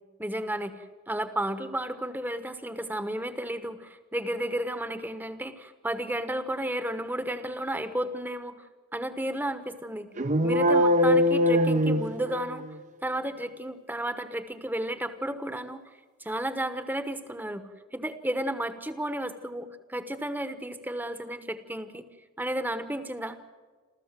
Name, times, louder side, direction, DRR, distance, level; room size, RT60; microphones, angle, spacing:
voice 1, 0.2-8.7 8.9-10.1 10.4-12.6 13.0-15.8 16.2-22.0 22.4-23.5, right 1 dB, 10° right, 10 dB, 1.2 m, -33 dB
sound 1, 10.2-12.7, equal, 35° right, 0.8 m, -22 dB
28.5 x 14.0 x 7.6 m, 1.5 s
head